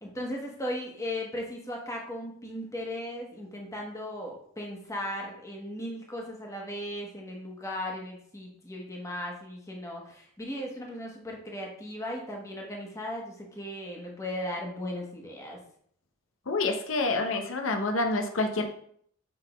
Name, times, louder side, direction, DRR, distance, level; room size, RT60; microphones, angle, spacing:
voice 1, 0.0-15.6, left 1 dB, 15° left, 0 dB, 1.2 m, -37 dB
voice 2, 16.5-18.6, left 2 dB, 75° left, 5 dB, 0.8 m, -27 dB
6.0 x 3.7 x 5.0 m, 0.64 s
head